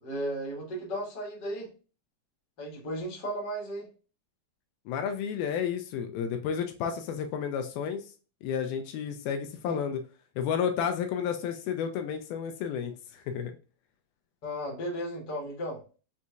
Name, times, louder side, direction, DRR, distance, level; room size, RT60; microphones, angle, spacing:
voice 1, 0.0-1.7 2.6-3.9 9.6-9.8 14.4-15.8, equal, 60° left, -3 dB, 1.0 m, -35 dB
voice 2, 4.9-8.1 8.4-10.0 10.4-13.5, left 7 dB, 80° left, 6 dB, 2.3 m, -31 dB
6.1 x 2.8 x 2.3 m, 0.35 s
omnidirectional pair, 4.4 m